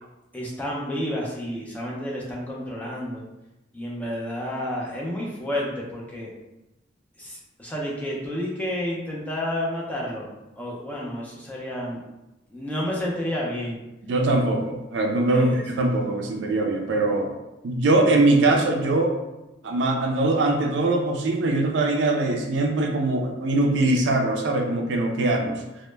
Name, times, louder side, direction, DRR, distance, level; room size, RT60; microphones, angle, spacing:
voice 1, 0.3-3.2 3.7-6.3 7.2-10.3 10.6-12.0 12.5-13.8 15.3-15.6, left 1 dB, 10° left, -4 dB, 0.4 m, -30 dB
voice 2, 14.0-17.3 17.6-19.1 19.6-25.6, right 2 dB, 70° right, 2 dB, 0.4 m, -22 dB
2.1 x 2.0 x 3.1 m, 0.97 s
head